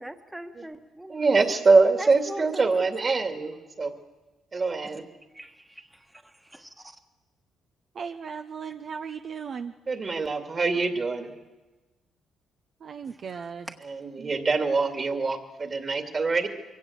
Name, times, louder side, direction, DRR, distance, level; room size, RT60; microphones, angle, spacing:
voice 1, 0.0-1.2 2.0-2.7 4.5-4.8 5.3-7.0 13.3-13.4, right 1 dB, 10° right, 6 dB, 1.5 m, -42 dB
voice 2, 1.1-3.9 4.5-5.0 9.9-11.3 13.8-16.5, right 3 dB, 35° right, 7 dB, 2.4 m, -24 dB
voice 3, 7.9-9.7 12.8-13.7 14.2-14.3, right 6 dB, 55° right, 7 dB, 0.8 m, -37 dB
23.0 x 17.0 x 8.1 m, 1.2 s
cardioid pair, 90°, 0 cm